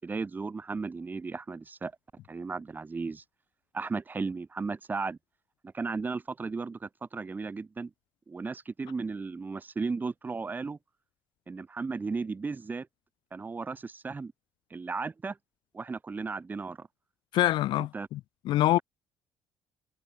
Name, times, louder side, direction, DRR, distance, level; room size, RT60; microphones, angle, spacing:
voice 1, 0.0-1.9 2.3-3.2 3.7-5.2 5.6-7.9 8.3-10.8 11.5-12.9 13.3-14.3 14.7-15.4 15.7-16.9 17.8-18.1, right 4 dB, 20° right, 6.2 m, -35 dB
voice 2, 17.3-18.2 18.5-18.8, left 15 dB, 70° left, 2.1 m, -25 dB
cardioid pair, 125°, 8 cm